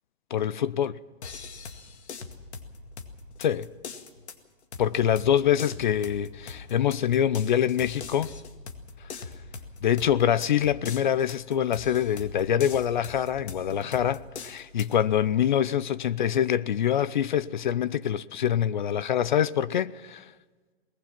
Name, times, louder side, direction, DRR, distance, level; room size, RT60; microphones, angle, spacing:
voice 1, 0.3-1.0 3.4-3.7 4.8-8.3 9.8-20.2, left 9 dB, 45° left, 0.6 m, -25 dB
sound 1, 1.2-14.9, left 4 dB, 85° left, 2.2 m, -42 dB
23.0 x 20.0 x 6.0 m
hypercardioid pair, 175°, 32 cm